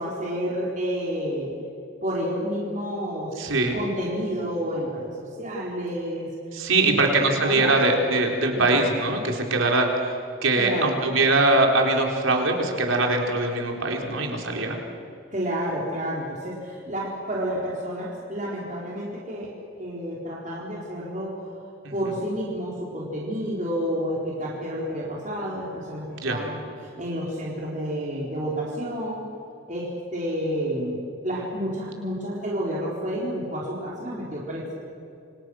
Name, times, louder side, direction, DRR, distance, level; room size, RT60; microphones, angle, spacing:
voice 1, 0.0-1.5 2.0-3.3 3.7-5.1 5.4-6.3 6.7-7.0 7.4-7.8 8.5-8.9 10.6-11.0 15.3-19.5 19.8-21.3 21.9-26.5 26.9-29.2 29.7-34.6, equal, 35° right, -4 dB, 4.3 m, -30 dB
voice 2, 3.4-3.7 6.5-10.2 10.4-14.8 21.8-21.9 26.2-26.4, right 2 dB, 80° right, 2 dB, 4.1 m, -22 dB
28.0 x 27.0 x 6.4 m, 2.6 s
head